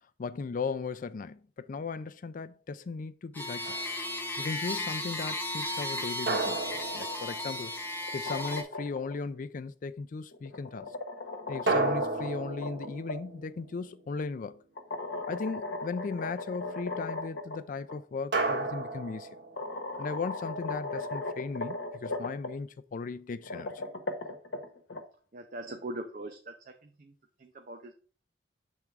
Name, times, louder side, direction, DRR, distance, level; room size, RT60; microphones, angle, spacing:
voice 1, 0.2-3.8 4.4-6.6 6.9-7.7 8.1-10.9 11.5-14.6 15.3-19.3 20.0-23.7, left 4 dB, 50° left, 0.4 m, -37 dB
sound 1, 3.3-8.6, left 1 dB, 10° left, 0.9 m, -35 dB
sound 2, 3.6-4.2 6.3-8.1 11.7-14.3 18.3-20.0, right 3 dB, 70° right, 1.6 m, -33 dB
sound 3, 8.0-9.2 10.3-13.2 14.8-17.6 17.9-18.0 19.0-19.1 19.6-22.5 23.3-25.0, left 2 dB, 80° left, 1.0 m, -37 dB
voice 2, 25.3-27.1 27.4-27.9, right 1 dB, 50° right, 0.6 m, -41 dB
6.7 x 3.6 x 4.6 m
head